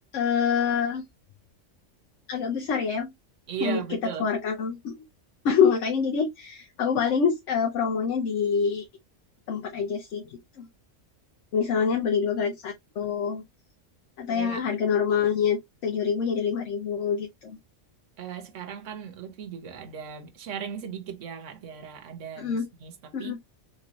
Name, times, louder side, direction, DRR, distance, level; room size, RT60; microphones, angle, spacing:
voice 1, 0.1-1.1 2.3-3.1 3.6-3.8 4.2-5.0 5.4-8.8 9.5-10.7 11.5-13.4 14.2-17.6 22.4-22.7 23.1-23.4, left 6 dB, 80° left, 1.0 m, -26 dB
voice 2, 3.5-4.3 11.8-11.9 14.3-14.6 18.2-23.4, right 8 dB, 80° right, 1.2 m, -37 dB
3.7 x 2.7 x 3.0 m
omnidirectional pair, 1.3 m